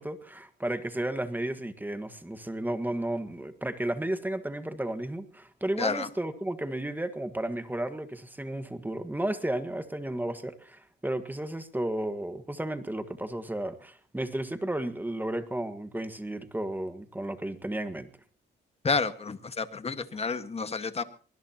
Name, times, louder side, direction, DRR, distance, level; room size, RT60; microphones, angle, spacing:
voice 1, 0.0-18.1, right 1 dB, 10° right, 9 dB, 1.7 m, -33 dB
voice 2, 5.8-6.1 18.8-21.0, left 4 dB, 30° left, 10 dB, 1.6 m, -30 dB
23.0 x 20.5 x 3.0 m, 0.40 s
cardioid pair, 90°, 20 cm